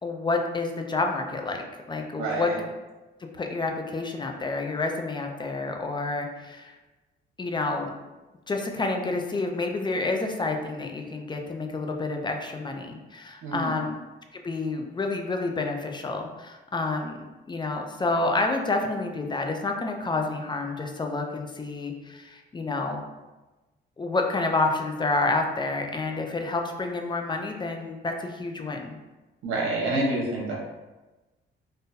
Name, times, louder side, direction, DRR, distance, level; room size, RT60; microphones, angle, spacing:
voice 1, 0.0-2.5 3.2-6.8 7.4-7.9 8.5-13.9 14.3-17.2 17.4-23.1 24.0-29.0, left 3 dB, 25° left, 3 dB, 0.4 m, -29 dB
voice 2, 2.1-2.6 13.4-13.8 29.4-30.5, right 2 dB, 85° right, -3 dB, 0.9 m, -28 dB
3.7 x 2.6 x 2.6 m, 1.1 s
cardioid pair, 90°, 20 cm